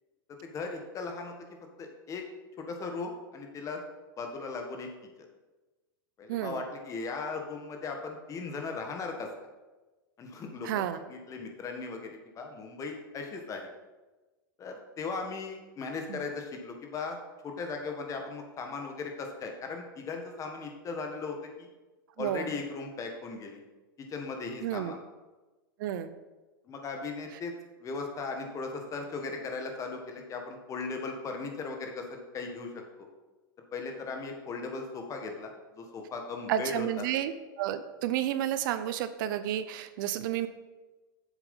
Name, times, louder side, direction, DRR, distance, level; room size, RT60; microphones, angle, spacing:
voice 1, 0.4-1.3 1.8-2.2 2.6-3.8 4.2-4.9 5.2-5.3 6.2-9.3 10.2-10.7 11.1-13.7 14.6-17.2 17.4-21.7 22.2-23.6 24.0-25.0 26.7-27.5 27.8-33.1 33.7-37.0, left 4 dB, 25° left, 3 dB, 1.6 m, -38 dB
voice 2, 6.3-6.6 10.6-11.0 16.1-16.2 22.2-22.5 24.6-25.0 25.8-26.1 36.5-37.3 37.6-40.5, right 11 dB, 65° right, 12 dB, 0.6 m, -31 dB
7.9 x 7.2 x 5.4 m, 1.2 s
hypercardioid pair, 125°, 12 cm